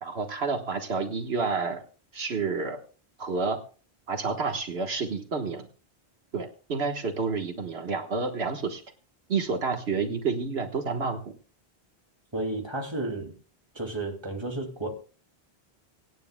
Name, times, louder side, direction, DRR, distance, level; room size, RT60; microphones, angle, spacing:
voice 1, 0.0-1.8 2.1-2.8 3.2-3.6 4.1-5.7 6.3-8.8 9.3-11.2, right 4 dB, 75° right, 1.6 m, -29 dB
voice 2, 12.3-13.3 13.7-15.0, right 2 dB, 25° right, 2.5 m, -32 dB
25.5 x 9.5 x 2.2 m
omnidirectional pair, 1.1 m